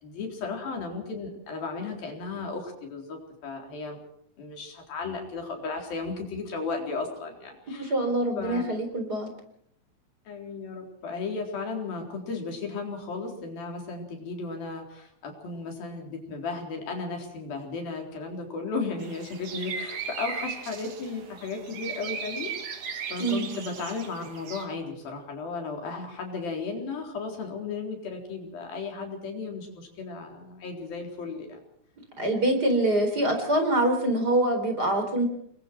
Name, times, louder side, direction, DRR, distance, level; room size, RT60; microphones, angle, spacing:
voice 1, 0.0-4.0 4.4-7.9 8.4-8.6 10.3-22.5 23.1-31.6, left 4 dB, 75° left, 2 dB, 5.8 m, -35 dB
voice 2, 7.7-9.3 23.2-23.4 32.2-35.2, right 1 dB, 25° right, 5 dB, 4.3 m, -25 dB
sound 1, 19.0-24.7, right 6 dB, 60° right, 3.7 m, -37 dB
28.5 x 22.0 x 4.6 m, 0.66 s
omnidirectional pair, 4.2 m